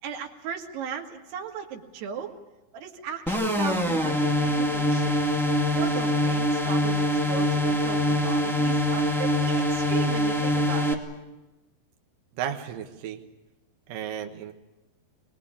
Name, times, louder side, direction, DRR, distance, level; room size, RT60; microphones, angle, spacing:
voice 1, 0.0-2.3 2.7-5.3 5.7-11.0, right 7 dB, 90° right, 3 dB, 3.9 m, -36 dB
sound 1, 3.3-10.9, left 1 dB, ahead, 0.9 m, -24 dB
voice 2, 12.4-13.2 13.9-14.5, right 9 dB, 65° right, 4 dB, 2.8 m, -33 dB
24.0 x 20.5 x 8.8 m, 1.1 s
omnidirectional pair, 4.5 m